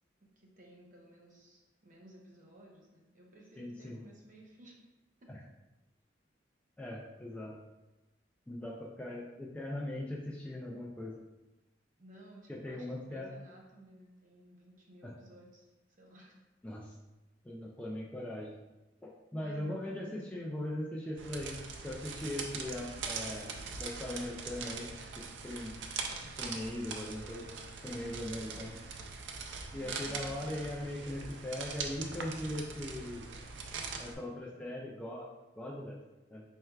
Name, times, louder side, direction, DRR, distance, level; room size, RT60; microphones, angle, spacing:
voice 1, 0.2-4.7 5.2-5.3 12.0-15.7 16.0-16.4 19.4-20.2 29.7-30.4, right 1 dB, 45° right, -2 dB, 0.8 m, -55 dB
voice 2, 3.6-4.0 5.3-5.4 6.8-7.6 8.5-11.1 12.5-13.3 15.0-15.1 16.6-16.9 17.4-18.5 19.0-21.6 21.8-23.5 23.8-24.9 25.1-25.7 26.4-27.5 27.8-28.7 29.7-33.3 34.0-35.3 35.6-36.0 36.3-36.4, left 1 dB, 10° left, -4 dB, 0.4 m, -40 dB
sound 1, 21.2-34.1, right 4 dB, 70° right, 0.4 m, -42 dB
4.5 x 3.3 x 2.3 m, 1.1 s
head